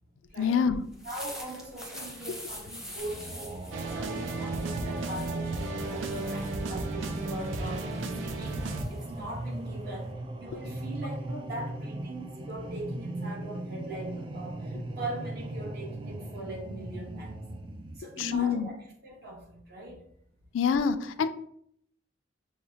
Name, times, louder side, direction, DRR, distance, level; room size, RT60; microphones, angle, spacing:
voice 1, 0.4-0.8 18.2-18.7 20.5-21.3, left 6 dB, 85° left, 10 dB, 0.3 m, -26 dB
sound 1, 0.8-10.1, equal, 5° right, 0.7 m, -46 dB
voice 2, 1.0-3.5 3.8-17.4 18.0-20.0, right 1 dB, 55° right, -1 dB, 1.1 m, -41 dB
sound 2, 3.0-18.0, right 1 dB, 25° right, 0.3 m, -38 dB
sound 3, 3.7-8.8, right 3 dB, 85° right, 0.5 m, -34 dB
5.6 x 2.1 x 2.7 m, 0.67 s
head